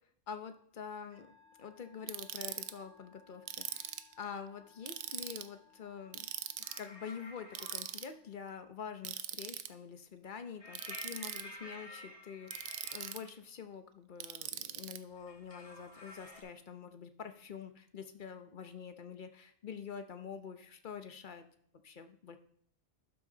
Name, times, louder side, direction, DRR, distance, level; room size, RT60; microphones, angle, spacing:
voice 1, 0.3-1.3 1.6-6.3 6.8-21.5 21.8-22.4, left 7 dB, 45° left, 8 dB, 0.8 m, -46 dB
Musical instrument, 1.1-8.7, left 5 dB, 35° right, 2.4 m, -65 dB
Ratchet pawl, 2.1-2.7 3.5-4.1 4.9-5.5 6.1-6.8 7.6-8.1 9.1-9.7 10.7-11.4 12.5-13.3 14.2-15.0, right 11 dB, 80° right, 1.0 m, -41 dB
sound 1, 6.6-7.8 10.6-13.1 15.1-16.4, left 1 dB, 25° left, 2.1 m, -50 dB
12.0 x 5.9 x 3.9 m, 0.65 s
omnidirectional pair, 1.4 m